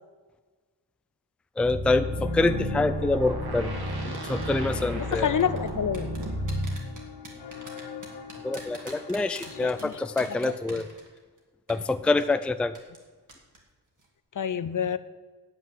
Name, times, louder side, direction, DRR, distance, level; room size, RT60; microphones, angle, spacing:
voice 1, 1.6-3.7 4.0-5.3 8.4-10.9 11.7-12.7, left 3 dB, 5° left, 10 dB, 0.4 m, -26 dB
sound 1, 1.6-6.8, equal, 65° right, 1.9 m, -32 dB
sound 2, 2.0-10.6, left 7 dB, 85° left, 1.1 m, -43 dB
sound 3, 4.1-4.5 5.1-11.4 11.7-11.8 12.2-12.3 12.7-13.0 13.3-13.6 13.9-14.1, right 2 dB, 50° right, 2.6 m, -45 dB
voice 2, 5.0-6.1 9.6-10.0 10.4-10.5 14.4-15.0, left 8 dB, 50° left, 14 dB, 0.6 m, -28 dB
9.4 x 8.2 x 7.6 m, 1.4 s
wide cardioid pair, 90°, 40 cm